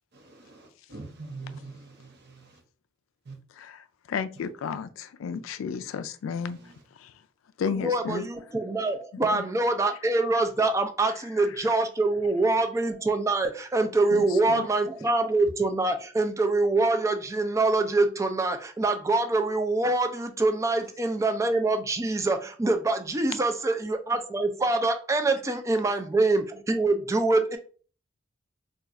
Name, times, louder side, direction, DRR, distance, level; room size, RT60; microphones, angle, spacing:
voice 1, 0.1-2.4 3.3-3.4, right 3 dB, 55° right, 0.7 m, -43 dB
voice 2, 3.6-6.6 7.0-7.1 7.6-8.3 9.3-9.4 14.1-14.7, left 6 dB, 85° left, 0.3 m, -33 dB
voice 3, 7.8-27.6, right 2 dB, 15° right, 0.3 m, -25 dB
2.4 x 2.3 x 4.0 m
head